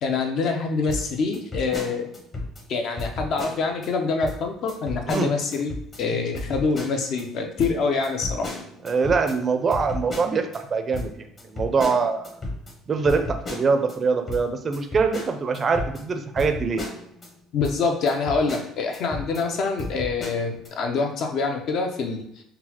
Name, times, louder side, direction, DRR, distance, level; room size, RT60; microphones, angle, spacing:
voice 1, 0.0-2.1 2.7-5.7 6.0-8.5 17.5-22.2, left 4 dB, 60° left, 4 dB, 0.6 m, -25 dB
sound 1, 0.9-2.7 3.0-3.9 4.2-4.4 4.7-6.0 6.3-7.2 7.6-10.6 10.9-14.0 14.3-17.3 17.6-17.8 18.1-19.5 19.8-20.7, left 2 dB, 30° left, 1.0 m, -34 dB
voice 2, 8.8-12.3 12.9-16.8, right 4 dB, 35° right, 7 dB, 0.4 m, -23 dB
3.8 x 2.2 x 2.9 m, 0.72 s
cardioid pair, 110°, 0 cm